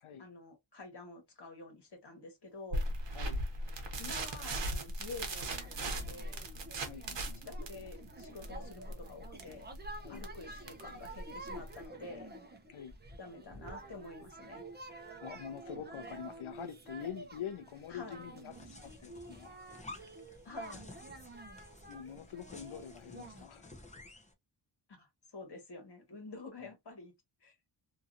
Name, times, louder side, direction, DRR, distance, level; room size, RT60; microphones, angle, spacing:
voice 1, 0.2-2.8 4.0-6.4 7.4-9.7 10.1-12.3 13.2-14.7 17.9-18.2 20.4-20.9 24.9-25.1 25.3-27.1 27.4-27.5, left 3 dB, 55° left, 1.5 m, -49 dB
sound 1, 2.7-11.9, right 1 dB, 60° right, 1.0 m, -39 dB
sound 2, 5.1-23.4, right 2 dB, 20° right, 0.7 m, -50 dB
voice 2, 6.9-7.5 10.0-10.2 12.7-13.0 14.9-19.6 21.9-23.7 26.6-26.7, left 8 dB, 75° left, 0.7 m, -45 dB
sound 3, 18.5-24.3, left 2 dB, 15° left, 0.7 m, -53 dB
2.9 x 2.7 x 2.4 m
wide cardioid pair, 140°, 49 cm